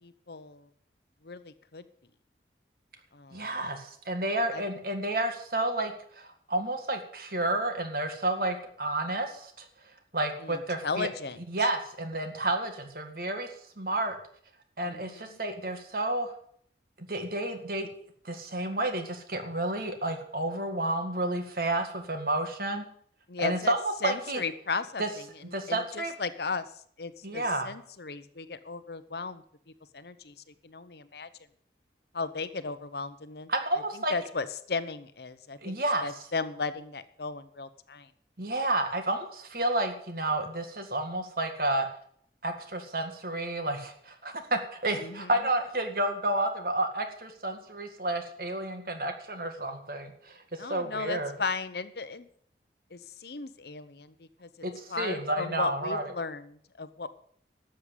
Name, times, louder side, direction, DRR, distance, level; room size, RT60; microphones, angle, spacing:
voice 1, 0.0-0.7 1.2-1.8 3.1-3.5 4.5-4.6 10.4-11.4 14.9-15.3 23.3-23.7 24.0-29.4 29.9-31.3 32.1-33.5 33.9-38.1 45.0-45.5 50.6-52.3 52.9-57.1, left 4 dB, 65° left, 13 dB, 0.9 m, -36 dB
voice 2, 3.3-9.7 10.1-11.1 11.5-14.2 14.8-16.3 17.0-17.9 18.2-22.8 23.4-23.8 24.0-24.4 25.0-25.1 25.5-26.1 27.2-27.7 33.5-34.1 35.6-36.1 38.4-41.9 42.4-51.3 54.6-56.0, right 1 dB, 55° right, 6 dB, 2.0 m, -31 dB
12.5 x 7.8 x 8.5 m, 0.62 s
head